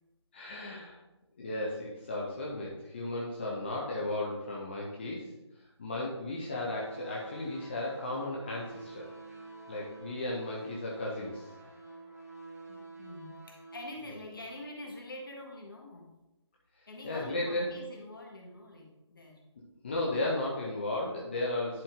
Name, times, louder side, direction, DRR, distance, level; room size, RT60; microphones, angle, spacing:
voice 1, 0.3-1.0 1.4-5.3 5.8-9.1 9.7-11.5 17.0-17.8 19.8-21.8, left 2 dB, 20° left, -3 dB, 0.8 m, -35 dB
sound 1, 6.5-13.9, right 3 dB, 35° right, 1.9 m, -48 dB
voice 2, 12.7-16.1 16.9-19.4, left 1 dB, 45° left, 1 dB, 1.8 m, -46 dB
10.5 x 4.3 x 3.7 m, 0.95 s
figure-of-eight pair, 160°, 16 cm